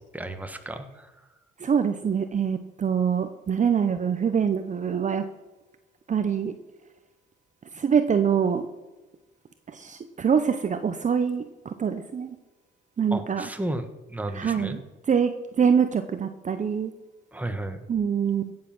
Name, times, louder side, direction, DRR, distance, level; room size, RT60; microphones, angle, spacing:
voice 1, 0.1-1.2 13.1-14.8 17.3-17.8, right 1 dB, 10° right, 7 dB, 1.4 m, -33 dB
voice 2, 1.6-5.3 6.1-6.5 7.7-8.7 9.7-12.4 13.0-13.5 14.3-14.8 15.1-16.9 17.9-18.5, right 7 dB, 40° right, 9 dB, 0.8 m, -24 dB
16.5 x 7.6 x 6.0 m, 1.1 s
cardioid pair, 90°, 20 cm